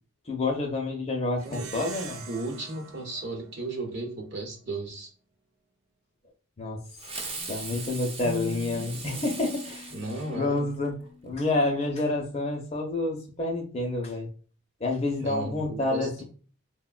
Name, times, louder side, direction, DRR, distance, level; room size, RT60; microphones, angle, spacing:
voice 1, 0.3-2.2 6.6-6.8 7.5-9.9 10.3-11.0 11.2-14.3 14.8-16.2, left 2 dB, 30° left, 2 dB, 0.5 m, -28 dB
Plucked string instrument, 1.4-4.2, right 5 dB, 85° right, 0.5 m, -44 dB
voice 2, 2.3-5.1 9.9-10.7 15.2-16.2, right 2 dB, 55° right, 1 dB, 0.8 m, -35 dB
Fireworks, 7.0-10.9, right 3 dB, 25° right, 0.4 m, -39 dB
sound 1, 7.7-12.3, right 1 dB, 65° left, 0.7 m, -43 dB
3.2 x 2.1 x 2.3 m, 0.39 s
head